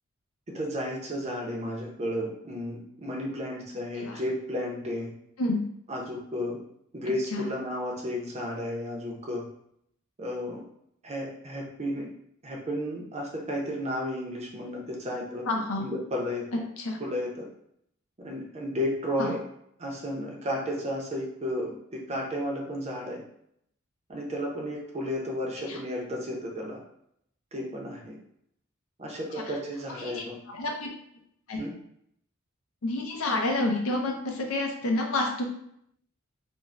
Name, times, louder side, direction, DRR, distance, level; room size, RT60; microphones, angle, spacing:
voice 1, 0.5-5.1 5.9-6.6 6.9-9.5 10.2-10.6 11.0-12.1 12.4-15.4 15.8-16.6 17.0-17.4 18.2-19.4 19.8-23.2 24.1-26.8 27.5-28.2 29.0-30.4 31.6-31.7, equal, 30° right, -1 dB, 0.6 m, -33 dB
voice 2, 15.5-15.9 16.8-17.0 19.2-19.3 25.7-25.8 30.0-30.2 30.5-30.9 31.5-31.6 32.8-35.4, left 2 dB, 80° left, 2 dB, 0.6 m, -28 dB
2.5 x 2.1 x 3.2 m, 0.72 s
head